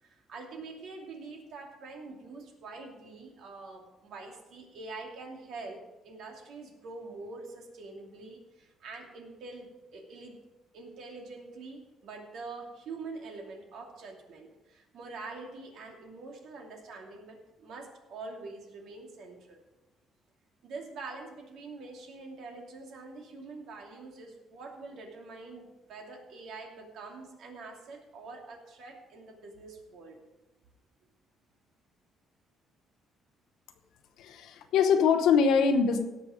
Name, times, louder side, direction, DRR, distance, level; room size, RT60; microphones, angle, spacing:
voice 1, 0.0-10.3 10.7-19.6 20.6-30.2, right 3 dB, 65° right, 1 dB, 2.6 m, -45 dB
voice 2, 34.2-36.1, left 6 dB, 75° left, 6 dB, 0.9 m, -23 dB
17.5 x 6.4 x 5.0 m, 1.0 s
cardioid pair, 145°, 0 cm